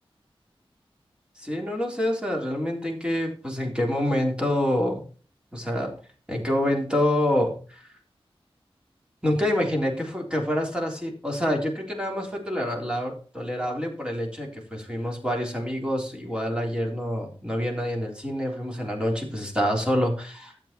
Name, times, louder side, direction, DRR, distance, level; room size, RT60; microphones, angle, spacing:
voice 1, 1.4-5.0 5.5-5.9 6.3-7.9 9.2-20.5, left 1 dB, 10° right, 0 dB, 3.8 m, -27 dB
12.0 x 8.2 x 4.5 m, 0.39 s
wide cardioid pair, 60°, 10 cm